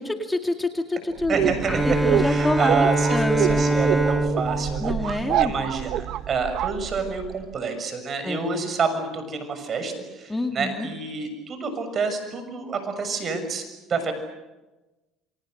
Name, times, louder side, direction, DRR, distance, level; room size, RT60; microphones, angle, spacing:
voice 1, 0.0-1.5 2.0-2.8 3.1-3.6 4.8-5.5 8.2-8.5 10.3-10.9, left 2 dB, 10° left, 5 dB, 2.1 m, -27 dB
sound 1, 1.2-7.4, right 12 dB, 65° right, 1.0 m, -27 dB
voice 2, 1.3-13.6 13.9-14.1, right 4 dB, 40° right, 8 dB, 6.6 m, -28 dB
Bowed string instrument, 1.6-5.7, right 1 dB, 5° right, 1.1 m, -24 dB
28.5 x 24.5 x 6.6 m, 1.1 s
supercardioid pair, 95°, 0 cm